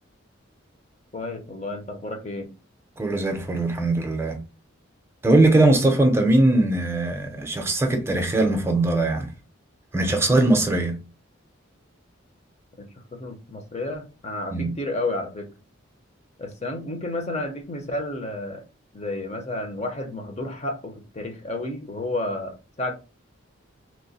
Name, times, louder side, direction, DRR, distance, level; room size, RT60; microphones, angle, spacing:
voice 1, 1.1-2.5 12.8-15.5 16.4-18.6 18.9-22.9, left 2 dB, 30° left, 0.7 m, -31 dB
voice 2, 3.0-4.4 5.2-9.3 9.9-11.0 14.5-14.7, right 2 dB, 10° right, 0.6 m, -20 dB
3.0 x 2.1 x 4.0 m
head